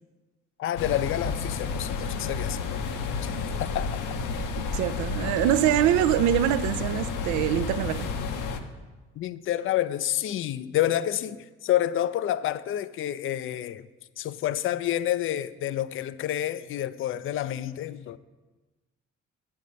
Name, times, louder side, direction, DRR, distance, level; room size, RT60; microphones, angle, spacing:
voice 1, 0.6-2.8 3.2-4.0 9.2-13.9 14.2-18.2, left 12 dB, 35° left, 0.4 m, -29 dB
sound 1, 0.8-8.6, left 5 dB, 55° left, 0.8 m, -31 dB
voice 2, 4.7-8.1, right 12 dB, 55° right, 0.4 m, -24 dB
9.1 x 5.3 x 5.5 m
figure-of-eight pair, 45°, 36 cm